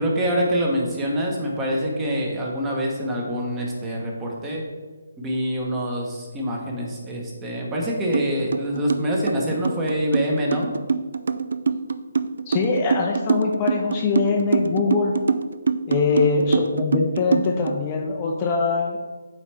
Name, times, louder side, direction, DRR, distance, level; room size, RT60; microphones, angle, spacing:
voice 1, 0.0-4.6 5.2-10.7 16.0-16.3, equal, 10° right, -2 dB, 1.1 m, -25 dB
sound 1, 8.1-8.3 8.5-17.7, right 5 dB, 70° right, 0.4 m, -23 dB
voice 2, 12.5-15.2 15.9-19.0, left 4 dB, 25° left, 0 dB, 0.6 m, -23 dB
8.6 x 4.1 x 3.4 m, 1.3 s
hypercardioid pair, 160°, 0 cm